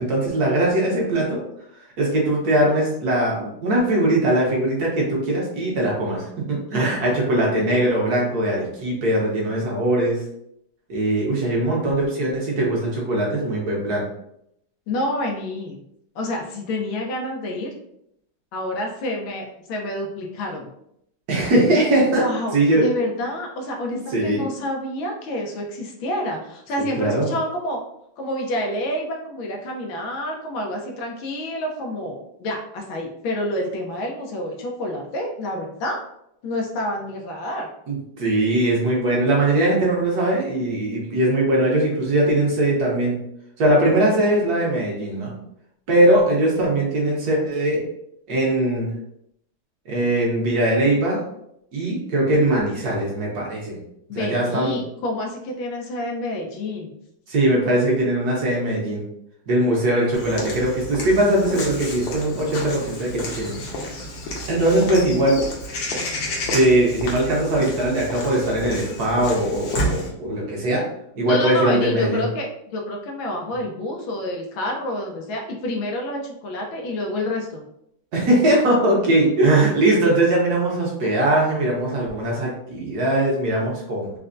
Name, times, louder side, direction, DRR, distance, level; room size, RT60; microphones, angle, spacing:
voice 1, 0.0-1.4 2.0-10.2 10.9-14.0 21.3-22.3 22.5-22.9 24.1-24.5 26.8-27.3 37.9-43.2 43.6-45.4 45.9-47.8 48.3-48.9 49.9-51.2 51.7-53.8 54.1-54.8 57.3-59.0 59.5-63.6 64.5-65.4 66.5-70.8 71.2-72.2 78.1-84.2, right 1 dB, 60° right, -3 dB, 1.3 m, -20 dB
voice 2, 14.9-15.8 16.1-17.7 18.5-20.7 22.0-22.5 22.8-27.8 28.2-36.0 36.4-37.7 54.1-57.0 71.3-77.6, left 1 dB, 90° left, 1 dB, 1.5 m, -28 dB
Walk footsteps / Bird vocalization bird call bird song, 60.1-70.1, left 1 dB, 75° left, 1.5 m, -30 dB
4.2 x 2.2 x 2.5 m, 0.76 s
omnidirectional pair, 2.1 m